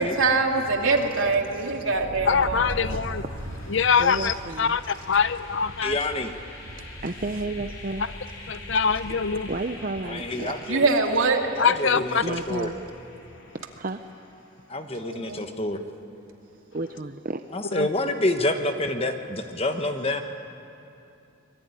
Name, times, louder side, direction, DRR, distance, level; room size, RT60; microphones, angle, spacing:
voice 1, 0.0-2.7 10.7-11.4 15.0-15.4, right 3 dB, 70° right, 2.7 m, -23 dB
sound 1, 1.9-13.7, left 1 dB, 80° left, 4.3 m, -41 dB
voice 2, 2.3-3.2 3.7-4.8 5.1-5.9 8.5-9.5 11.6-12.2 17.8-17.9, left 6 dB, 60° left, 0.7 m, -23 dB
voice 3, 2.9-5.1 5.8-5.9 7.0-8.2 9.5-10.7 12.2-12.9 13.8-14.0 16.7-17.4 19.6-19.7, right 2 dB, 40° right, 0.7 m, -33 dB
voice 4, 5.8-6.3 10.1-10.9 11.6-12.7 14.7-15.8 17.5-20.2, left 1 dB, 25° left, 1.2 m, -28 dB
26.0 x 21.0 x 9.8 m
head